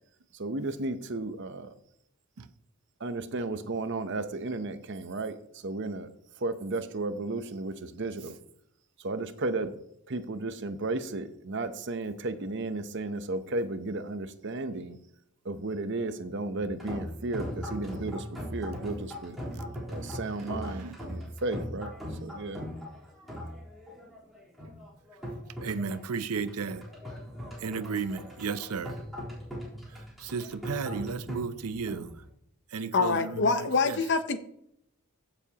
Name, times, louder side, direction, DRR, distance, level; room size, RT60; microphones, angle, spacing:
voice 1, 0.3-1.7 3.0-6.1 6.4-8.4 9.0-9.7 10.1-15.0 15.4-18.3 18.5-19.4 19.9-21.9 22.2-22.6, right 2 dB, 55° right, 0.8 m, -34 dB
sound 1, 16.6-32.3, equal, ahead, 3.7 m, -40 dB
voice 2, 19.5-21.1 25.6-26.9 27.6-29.0 29.9-32.3 32.7-34.0, right 5 dB, 90° right, 0.6 m, -35 dB
voice 3, 32.9-34.4, left 4 dB, 50° left, 0.8 m, -25 dB
15.0 x 7.0 x 2.9 m
head